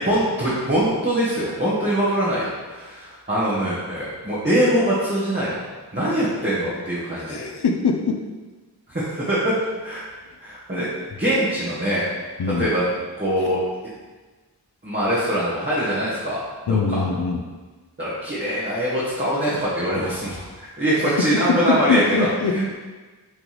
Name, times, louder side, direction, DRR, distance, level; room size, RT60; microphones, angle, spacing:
voice 1, 0.0-5.6 5.9-7.4 8.9-9.6 9.8-10.0 10.4-10.9 11.1-12.0 12.6-13.6 14.8-16.4 16.9-17.0 18.0-22.6, equal, 25° right, -9 dB, 1.7 m, -23 dB
voice 2, 7.2-8.2 12.4-12.7 13.4-13.5 16.7-17.5 21.0-22.7, left 4 dB, 70° left, 4 dB, 0.6 m, -23 dB
8.0 x 3.9 x 3.3 m, 1.3 s
wide cardioid pair, 60°, 41 cm